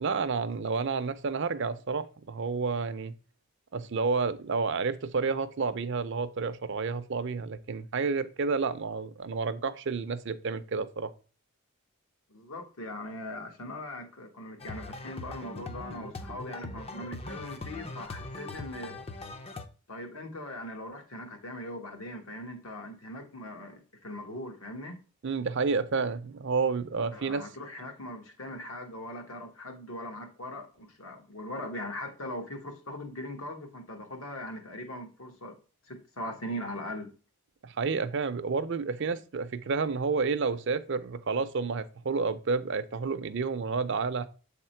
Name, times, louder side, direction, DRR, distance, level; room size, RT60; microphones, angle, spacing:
voice 1, 0.0-3.1 3.7-11.1 25.2-27.4 37.6-44.3, right 4 dB, 55° right, 0.5 m, -30 dB
voice 2, 12.3-19.0 19.9-25.0 27.1-35.6 35.8-37.1, left 1 dB, 70° left, 1.3 m, -40 dB
sound 1, 14.6-19.6, left 2 dB, 25° left, 0.5 m, -41 dB
7.2 x 3.6 x 4.4 m
head